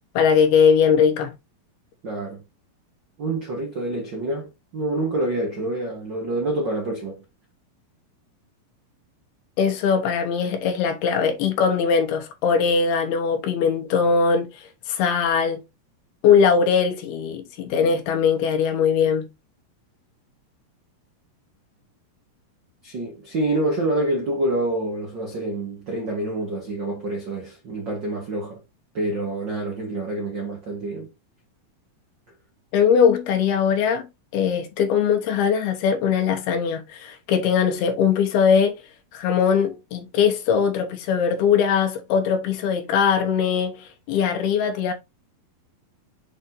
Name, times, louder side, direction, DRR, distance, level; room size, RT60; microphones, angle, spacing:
voice 1, 0.1-1.3 9.6-15.6 16.2-19.3 32.7-34.1 34.3-38.8 39.1-44.9, left 6 dB, 80° left, 3.2 m, -20 dB
voice 2, 2.0-2.4 3.2-7.2 22.8-28.6 28.9-31.1, right 1 dB, 75° right, 1.0 m, -27 dB
8.3 x 4.4 x 2.7 m
omnidirectional pair, 4.4 m